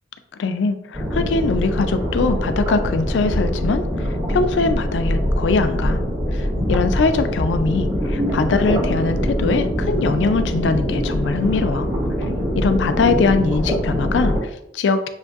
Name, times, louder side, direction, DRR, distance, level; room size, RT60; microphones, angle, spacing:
voice 1, 0.4-6.0 6.3-11.9 12.5-15.1, left 4 dB, 90° left, 9 dB, 0.4 m, -22 dB
sound 1, 0.9-14.4, equal, 30° right, 1.5 m, -23 dB
6.4 x 2.6 x 2.4 m, 0.77 s
head